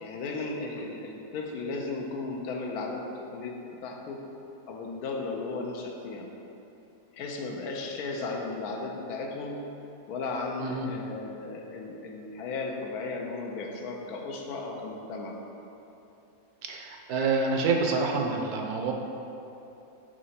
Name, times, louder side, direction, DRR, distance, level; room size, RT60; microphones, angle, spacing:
voice 1, 0.0-3.6 3.8-4.2 4.7-6.3 7.1-9.6 10.1-15.4, left 3 dB, 80° left, 1 dB, 1.2 m, -35 dB
voice 2, 10.6-10.9 16.7-18.9, right 4 dB, 75° right, 1 dB, 1.1 m, -27 dB
6.2 x 3.8 x 4.2 m, 3.0 s
omnidirectional pair, 1.6 m